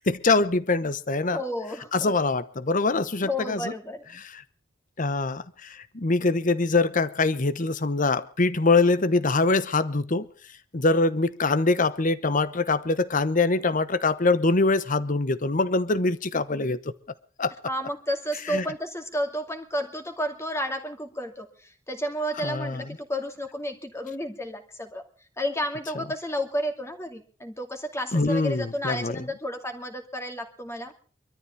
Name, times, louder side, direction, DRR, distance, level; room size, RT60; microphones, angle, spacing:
voice 1, 0.1-1.4 1.9-3.7 5.0-10.3 10.7-16.8 17.4-17.5 18.5-18.6 22.4-22.8 28.1-29.2, left 3 dB, 45° left, 1.0 m, -23 dB
voice 2, 1.3-2.1 3.2-4.1 17.6-25.0 25.4-30.9, equal, 15° left, 2.5 m, -31 dB
24.5 x 13.5 x 3.4 m
head